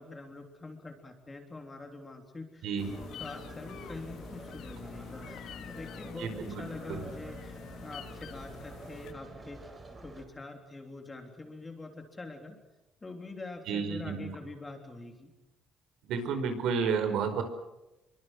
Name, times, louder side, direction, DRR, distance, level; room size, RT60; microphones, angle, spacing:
voice 1, 0.0-2.7 3.2-9.6 10.0-12.6 13.0-15.3, left 3 dB, 15° left, 4 dB, 3.4 m, -45 dB
sound 1, 2.8-9.1, left 9 dB, 60° left, 2.0 m, -46 dB
sound 2, 2.8-10.2, right 2 dB, 20° right, 4.1 m, -48 dB
voice 2, 6.2-6.6 6.9-7.1 13.7-14.3 16.0-17.4, right 6 dB, 70° right, 8 dB, 5.0 m, -31 dB
28.0 x 23.5 x 6.4 m, 0.96 s
cardioid pair, 180°, 0 cm